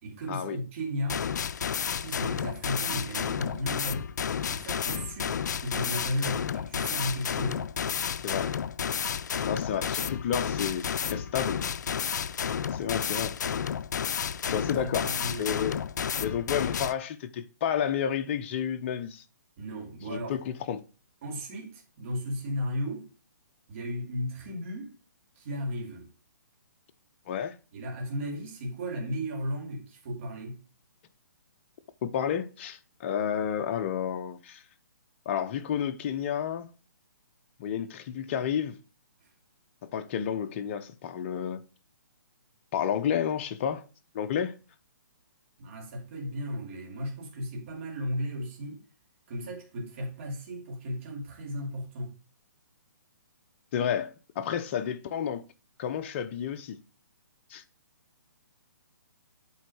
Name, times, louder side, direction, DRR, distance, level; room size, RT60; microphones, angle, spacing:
voice 1, 0.0-1.3 1.9-4.0 4.5-7.7 14.5-15.5 19.6-20.4 21.2-23.1 23.7-24.9 25.4-26.1 27.7-30.6 39.2-39.3 45.6-48.8 49.3-52.1, equal, 40° right, 2.6 m, -35 dB
sound 1, 1.1-16.9, left 7 dB, 65° left, 0.4 m, -31 dB
voice 2, 8.2-8.6 9.4-11.6 12.7-13.4 14.4-15.8 16.2-19.2 20.1-20.8 27.3-27.5 32.0-34.6 35.3-36.7 37.6-38.8 39.8-41.6 42.7-43.8 44.1-44.6 53.7-55.4 55.8-56.8 57.5-57.6, left 8 dB, 35° left, 0.7 m, -31 dB
8.3 x 3.9 x 4.5 m
hypercardioid pair, 145°, 10 cm